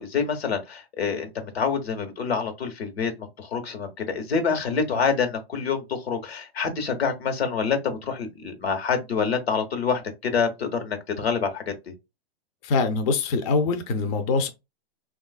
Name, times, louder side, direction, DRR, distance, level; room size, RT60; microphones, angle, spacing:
voice 1, 0.0-11.9, left 5 dB, 80° left, 1.0 m, -27 dB
voice 2, 12.6-14.5, left 4 dB, 35° left, 0.5 m, -24 dB
3.2 x 2.4 x 2.3 m
hypercardioid pair, 120°, 31 cm